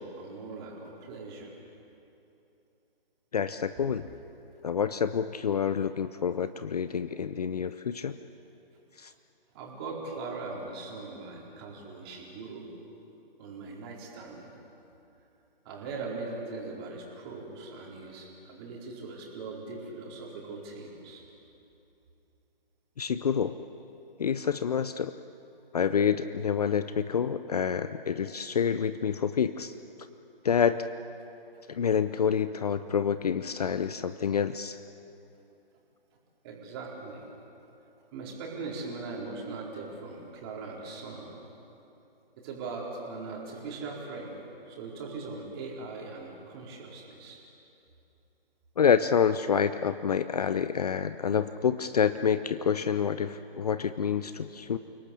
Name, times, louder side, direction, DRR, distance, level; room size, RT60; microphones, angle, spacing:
voice 1, 0.0-1.5 9.5-12.6 13.4-14.5 15.6-21.2 36.4-37.3 38.1-41.4 42.4-47.4, right 3 dB, 25° right, -3 dB, 4.6 m, -40 dB
voice 2, 3.3-4.0 4.6-8.2 9.0-9.1 23.0-23.6 24.2-25.1 25.7-29.7 30.4-30.9 31.7-34.8 48.8-54.8, left 7 dB, 40° left, 12 dB, 0.7 m, -27 dB
29.0 x 18.5 x 8.5 m, 2.9 s
figure-of-eight pair, 140°, 29 cm